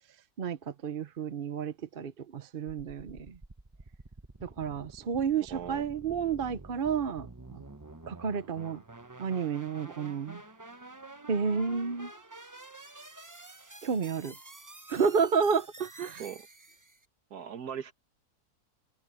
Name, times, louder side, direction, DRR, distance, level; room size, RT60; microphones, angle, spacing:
voice 1, 0.4-3.4 4.4-7.6 8.1-8.8 9.2-10.4 11.3-12.1 13.8-14.3 14.9-16.2, right 6 dB, 45° right, 0.8 m, -31 dB
sound 1, 3.1-17.1, right 2 dB, 15° right, 0.8 m, -49 dB
voice 2, 5.5-5.8 16.2-16.5 17.3-17.9, right 8 dB, 75° right, 1.8 m, -39 dB
omnidirectional pair, 1.6 m